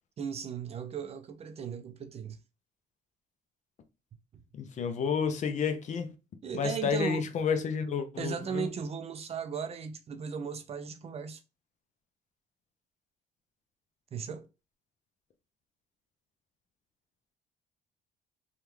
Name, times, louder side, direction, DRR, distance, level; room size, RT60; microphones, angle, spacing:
voice 1, 0.2-2.4 4.3-4.4 6.4-7.2 8.2-11.4 14.1-14.5, right 6 dB, 35° right, 0.5 m, -36 dB
voice 2, 4.5-6.1 6.5-8.7, left 6 dB, 45° left, 0.6 m, -30 dB
3.4 x 2.3 x 3.0 m
cardioid pair, 110°, 17 cm